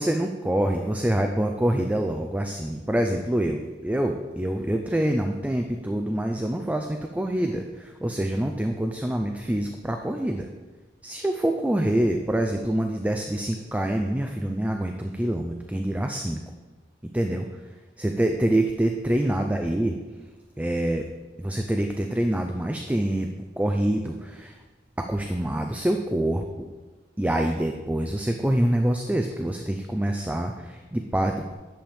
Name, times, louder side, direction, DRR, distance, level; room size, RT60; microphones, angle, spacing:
voice 1, 0.0-10.5 11.0-16.4 17.0-17.6 18.0-20.0 20.6-21.1 21.4-23.3 23.6-24.6 25.0-26.7 27.2-31.5, right 1 dB, 10° right, 4 dB, 0.4 m, -26 dB
10.5 x 7.2 x 3.4 m, 1.3 s
head